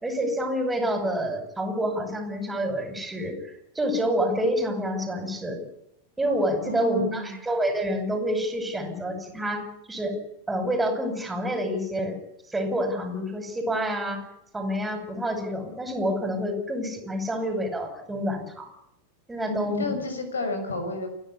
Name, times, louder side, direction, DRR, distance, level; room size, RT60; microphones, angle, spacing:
voice 1, 0.0-5.6 6.2-9.6 9.9-10.2 10.5-12.2 12.5-14.2 14.5-18.7 19.3-19.8, equal, 10° right, 6 dB, 5.9 m, -28 dB
voice 2, 6.6-7.4 19.5-21.1, left 2 dB, 70° left, 7 dB, 5.9 m, -31 dB
29.5 x 11.0 x 9.7 m, 0.82 s
figure-of-eight pair, 90°, 0 cm